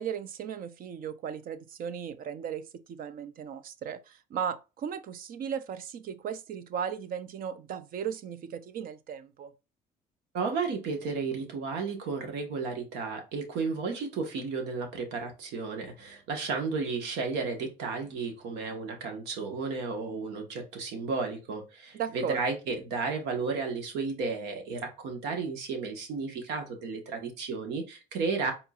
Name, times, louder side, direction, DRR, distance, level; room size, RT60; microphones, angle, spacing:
voice 1, 0.0-9.5 21.9-22.4, right 8 dB, 60° right, 0.6 m, -36 dB
voice 2, 10.3-28.5, right 4 dB, 90° right, 1.4 m, -33 dB
4.5 x 3.8 x 2.4 m
cardioid pair, 110°, 17 cm